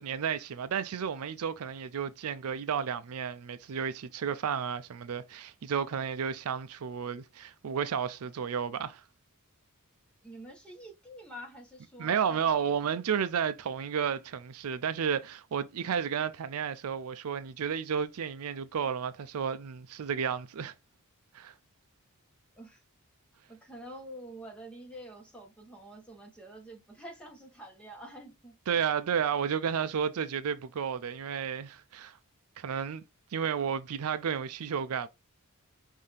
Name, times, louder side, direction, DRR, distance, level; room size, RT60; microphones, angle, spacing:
voice 1, 0.0-9.0 12.0-20.7 21.3-21.5 28.7-32.2 32.6-33.0 33.3-35.1, right 7 dB, 75° right, 0.4 m, -32 dB
voice 2, 10.2-12.8 22.6-22.8 23.5-28.5, equal, 5° left, 1.3 m, -47 dB
5.5 x 2.7 x 3.3 m
head